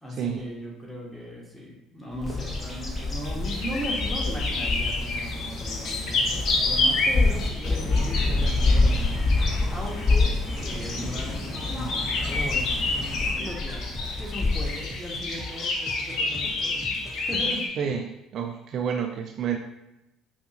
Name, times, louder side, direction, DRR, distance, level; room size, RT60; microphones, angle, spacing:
voice 1, 0.0-12.7 13.3-17.6, equal, ahead, -4 dB, 1.4 m, -37 dB
Bird vocalization bird call bird song, 2.2-15.5, left 3 dB, 30° left, 1.1 m, -27 dB
sound 1, 3.4-17.7, left 3 dB, 55° left, 0.6 m, -30 dB
sound 2, 6.9-17.5, equal, 15° right, 0.6 m, -43 dB
voice 2, 17.8-19.6, right 7 dB, 55° right, 4 dB, 0.3 m, -29 dB
5.1 x 2.3 x 2.8 m, 0.92 s
hypercardioid pair, 60°, 0 cm